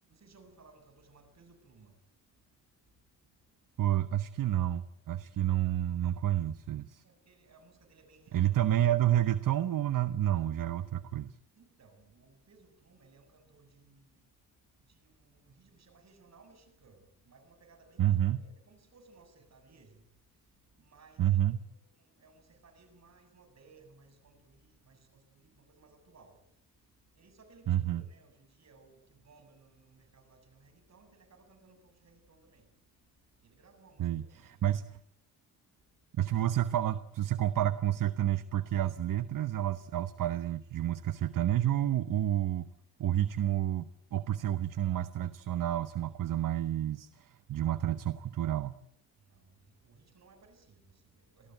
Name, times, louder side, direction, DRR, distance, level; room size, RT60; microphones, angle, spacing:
voice 1, 0.0-2.0 3.3-3.4 7.0-8.6 11.5-14.4 14.8-26.8 27.1-32.7 33.4-34.7 49.2-51.5, right 3 dB, 50° right, 9 dB, 7.7 m, -61 dB
voice 2, 3.8-7.0 8.3-11.4 18.0-18.4 21.2-21.6 27.7-28.0 34.0-35.0 36.2-42.7 43.0-48.8, right 12 dB, 65° right, 14 dB, 1.1 m, -30 dB
27.5 x 20.0 x 9.2 m, 0.73 s
cardioid pair, 95°, 35 cm